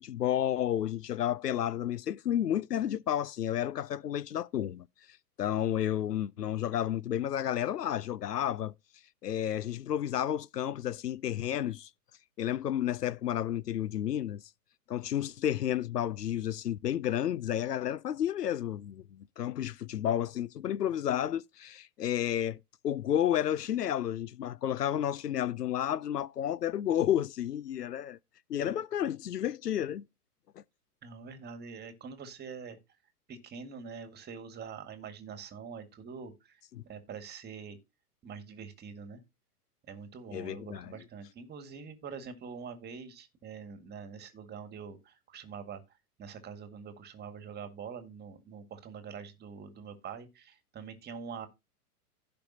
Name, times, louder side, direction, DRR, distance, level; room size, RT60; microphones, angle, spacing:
voice 1, 0.0-4.9 5.4-8.7 9.2-11.9 12.4-14.4 14.9-28.2 28.5-30.0 36.7-36.8 40.3-41.0, left 11 dB, 85° left, 0.6 m, -31 dB
voice 2, 31.0-32.8 33.3-37.8 38.2-39.2 39.9-45.8 46.2-51.5, right 6 dB, 20° right, 1.9 m, -45 dB
15.5 x 5.4 x 2.8 m
figure-of-eight pair, 110°, 47 cm